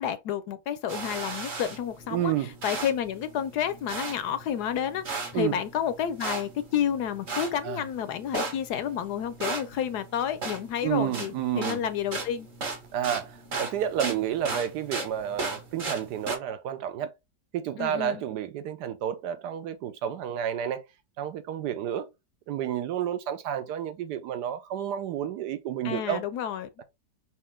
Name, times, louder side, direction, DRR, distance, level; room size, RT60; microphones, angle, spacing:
voice 1, 0.0-5.0 5.3-12.5 17.8-18.2 25.8-26.8, left 9 dB, 75° left, 1.1 m, -30 dB
sound 1, 0.9-16.4, right 3 dB, 40° right, 1.4 m, -37 dB
voice 2, 2.1-2.5 5.3-5.6 7.6-7.8 10.8-11.8 12.9-17.1 17.5-20.8 21.2-22.1 22.5-26.2, right 10 dB, 75° right, 1.2 m, -30 dB
4.4 x 2.9 x 3.5 m
omnidirectional pair, 1.9 m